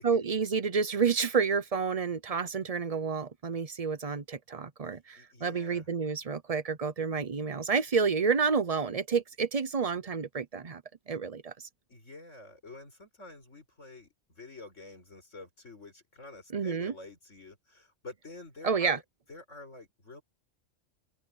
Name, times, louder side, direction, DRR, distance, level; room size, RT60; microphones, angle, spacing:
voice 1, 0.0-10.8 11.1-11.7 16.5-16.9 18.6-19.0, right 5 dB, 35° right, 0.6 m, -29 dB
voice 2, 4.8-5.9 11.9-19.0 19.3-20.2, left 2 dB, 70° left, 5.5 m, -48 dB
open air
omnidirectional pair, 1.3 m